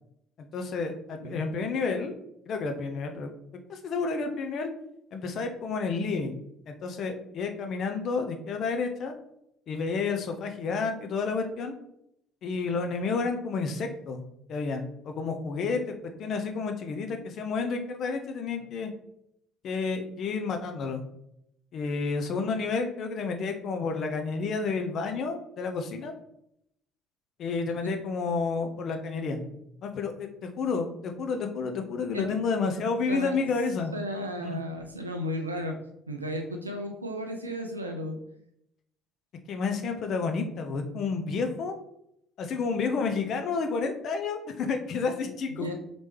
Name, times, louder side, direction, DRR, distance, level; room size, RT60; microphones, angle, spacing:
voice 1, 0.4-2.1 2.5-3.3 3.7-4.7 5.1-6.4 6.7-9.1 9.7-11.8 12.4-14.2 14.5-15.9 16.2-18.9 19.6-21.0 21.7-26.1 27.4-29.4 29.8-33.9 34.4-34.6 39.5-41.7 42.4-45.7, left 4 dB, 50° left, 5 dB, 0.6 m, -30 dB
voice 2, 33.9-35.8 36.1-38.2 45.2-45.7, equal, 85° right, 3 dB, 0.4 m, -34 dB
4.2 x 3.0 x 3.3 m, 0.77 s
figure-of-eight pair, 50°, 0 cm